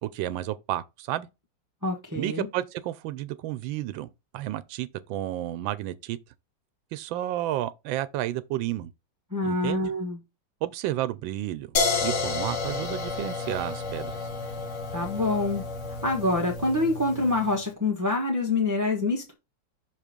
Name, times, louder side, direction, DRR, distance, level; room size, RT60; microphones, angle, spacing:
voice 1, 0.0-1.3 2.1-6.2 6.9-8.9 9.4-9.8 10.6-11.7 12.0-14.3, right 13 dB, 85° right, 1.3 m, -31 dB
voice 2, 1.8-2.5 9.3-10.2 14.9-15.6 16.0-19.3, left 2 dB, 10° right, 1.0 m, -26 dB
sound 1, 11.8-17.6, left 4 dB, 45° left, 1.3 m, -31 dB
6.1 x 3.0 x 5.1 m
omnidirectional pair, 2.1 m